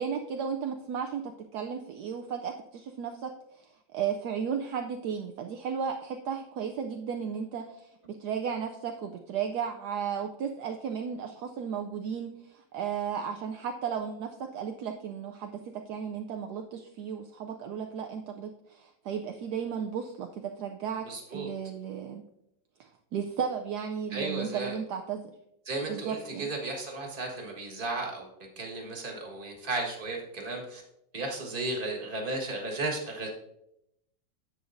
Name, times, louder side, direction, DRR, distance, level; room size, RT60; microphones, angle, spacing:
voice 1, 0.0-21.1 21.3-22.2 22.8-25.2 25.9-26.5, right 7 dB, 70° right, 4 dB, 1.1 m, -34 dB
voice 2, 21.0-21.5 24.1-24.8 25.6-28.3 28.6-30.8 31.1-33.3, right 2 dB, 30° right, 0 dB, 1.6 m, -34 dB
10.0 x 7.6 x 2.6 m, 0.80 s
omnidirectional pair, 2.0 m